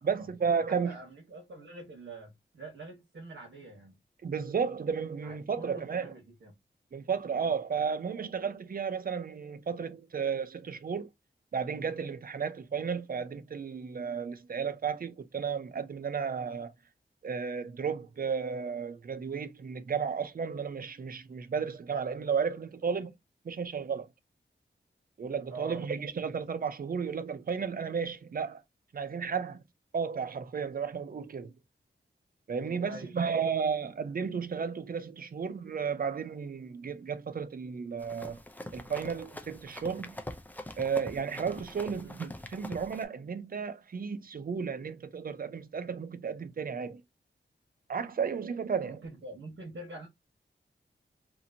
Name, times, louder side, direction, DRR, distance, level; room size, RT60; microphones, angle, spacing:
voice 1, 0.0-1.0 4.2-6.1 6.9-11.1 11.5-16.7 17.2-23.1 23.4-24.1 25.2-28.6 28.9-29.6 29.9-31.5 32.5-38.4 38.7-40.2 40.8-47.0 47.9-49.0, right 6 dB, 50° right, 0.5 m, -33 dB
voice 2, 0.7-4.0 5.2-6.5 7.3-7.5 25.5-25.9 32.8-33.2 41.9-42.2 48.8-50.1, right 2 dB, 75° right, 1.1 m, -46 dB
Run, 38.0-43.0, left 1 dB, 10° left, 0.5 m, -44 dB
2.8 x 2.5 x 2.7 m
wide cardioid pair, 85°, 19 cm